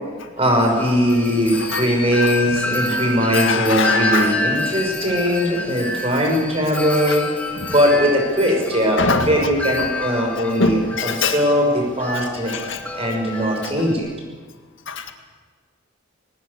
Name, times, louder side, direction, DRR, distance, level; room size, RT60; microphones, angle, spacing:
voice 1, 0.4-7.2 7.6-12.5 12.9-14.1, equal, 30° right, 1 dB, 6.1 m, -20 dB
Wind chime, 0.5-13.9, left 2 dB, 5° left, 2.8 m, -28 dB
voice 2, 3.3-4.3 9.0-9.3 10.6-11.4 12.5-12.8 14.9-15.1, left 4 dB, 60° left, 6 dB, 1.8 m, -22 dB
20.5 x 19.0 x 8.3 m, 1.4 s
head